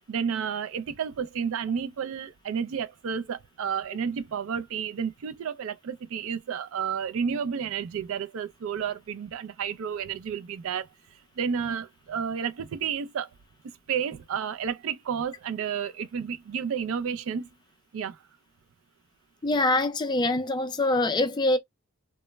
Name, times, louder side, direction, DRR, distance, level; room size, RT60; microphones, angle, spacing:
voice 1, 0.1-10.9 11.4-13.3 13.6-17.5 17.9-18.2, right 7 dB, 70° right, 0.3 m, -31 dB
voice 2, 19.4-21.6, left 2 dB, 20° left, 0.3 m, -24 dB
2.0 x 2.0 x 3.2 m
head